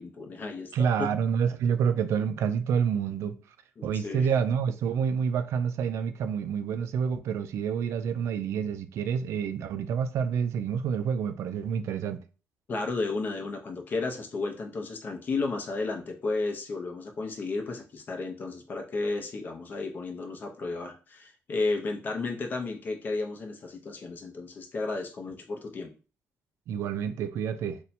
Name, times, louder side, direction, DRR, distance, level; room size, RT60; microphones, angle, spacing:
voice 1, 0.0-1.1 3.8-4.3 12.7-25.9, left 3 dB, 40° left, 0.7 m, -33 dB
voice 2, 0.7-3.4 3.8-12.2 26.7-27.8, right 7 dB, 70° right, 0.4 m, -28 dB
2.7 x 2.2 x 4.1 m
cardioid pair, 145°, 5 cm